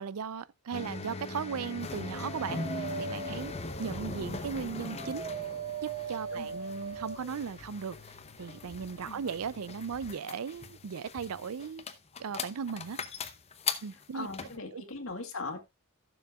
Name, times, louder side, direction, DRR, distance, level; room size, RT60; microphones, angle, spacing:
voice 1, 0.0-3.5 3.8-5.3 5.8-8.1 8.4-11.9 12.2-13.0 13.8-14.3 14.7-14.8, right 6 dB, 80° right, 0.5 m, -37 dB
sound 1, 0.7-14.6, left 4 dB, 30° left, 0.8 m, -40 dB
Dog, 1.8-7.4, right 5 dB, 30° right, 1.5 m, -40 dB
sound 2, 3.2-10.1, left 3 dB, 45° left, 2.5 m, -55 dB
voice 2, 14.1-15.6, left 3 dB, 65° left, 2.1 m, -39 dB
16.0 x 7.0 x 2.3 m
head